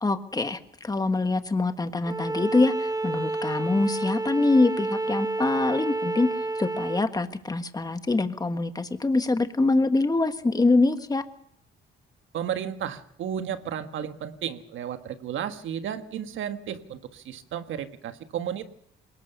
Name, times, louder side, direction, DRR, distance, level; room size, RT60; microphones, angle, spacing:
voice 1, 0.0-6.3 6.6-11.2, left 3 dB, 20° left, 9 dB, 1.4 m, -24 dB
Bowed string instrument, 2.0-7.1, right 2 dB, 20° right, 1.0 m, -29 dB
voice 2, 12.3-18.7, right 9 dB, 75° right, 9 dB, 1.5 m, -33 dB
21.5 x 19.0 x 6.8 m, 0.70 s
cardioid pair, 90°, 20 cm